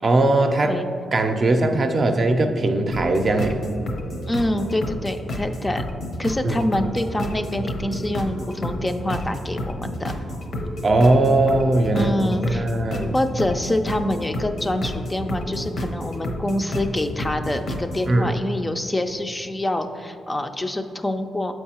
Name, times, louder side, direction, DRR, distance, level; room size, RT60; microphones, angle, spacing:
voice 1, 0.0-0.8 1.1-3.6 6.4-6.6 10.8-13.2 18.1-18.4, right 2 dB, 45° right, 5 dB, 0.5 m, -20 dB
sound 1, 2.9-18.1, left 1 dB, 70° left, 0.7 m, -30 dB
voice 2, 4.3-5.8 6.2-10.1 11.9-12.7 13.1-21.5, left 1 dB, 20° left, 7 dB, 0.3 m, -26 dB
7.4 x 4.6 x 2.9 m, 2.5 s
cardioid pair, 70°, 0 cm